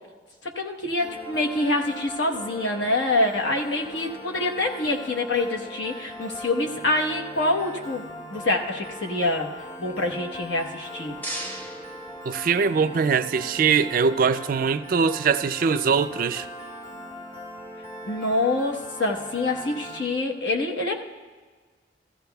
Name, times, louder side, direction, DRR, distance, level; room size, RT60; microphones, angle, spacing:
voice 1, 0.4-9.5 9.8-11.2 18.1-21.0, left 2 dB, 75° left, 1.1 m, -26 dB
Piano, 1.0-20.0, equal, 30° left, 2.8 m, -40 dB
sound 1, 10.7-12.9, right 1 dB, 10° left, 0.8 m, -38 dB
voice 2, 12.2-16.5, right 5 dB, 50° right, 0.4 m, -22 dB
15.5 x 14.5 x 2.3 m
head